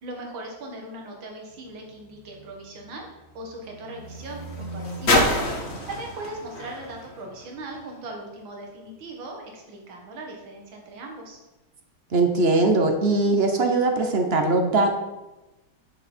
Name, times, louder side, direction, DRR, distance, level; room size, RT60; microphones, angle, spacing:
voice 1, 0.0-3.1 3.3-5.3 5.9-11.4, right 2 dB, 75° right, 1 dB, 2.3 m, -39 dB
sound 1, 1.5-8.1 8.9-9.0, left 1 dB, 35° left, 1.4 m, -29 dB
voice 2, 12.1-14.9, right 2 dB, 45° right, 4 dB, 0.9 m, -21 dB
8.5 x 6.4 x 4.4 m, 1.0 s
omnidirectional pair, 2.1 m